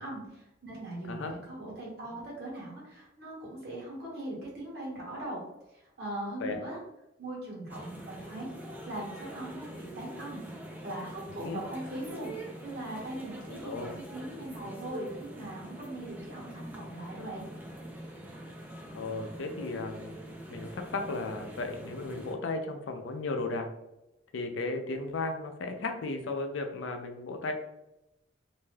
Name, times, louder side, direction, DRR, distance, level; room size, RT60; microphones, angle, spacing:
voice 1, 0.0-5.4 5.7-6.8 7.2-8.5 8.8-10.4 10.8-12.3 12.6-13.8 14.1-17.5, right 1 dB, 55° right, -5 dB, 1.2 m, -40 dB
sound 1, 7.7-22.3, right 1 dB, 10° right, 0.4 m, -44 dB
voice 2, 13.5-13.9 18.9-20.2 20.5-23.7 24.3-27.5, left 3 dB, 85° left, 5 dB, 0.4 m, -35 dB
2.6 x 2.2 x 3.2 m, 0.91 s
head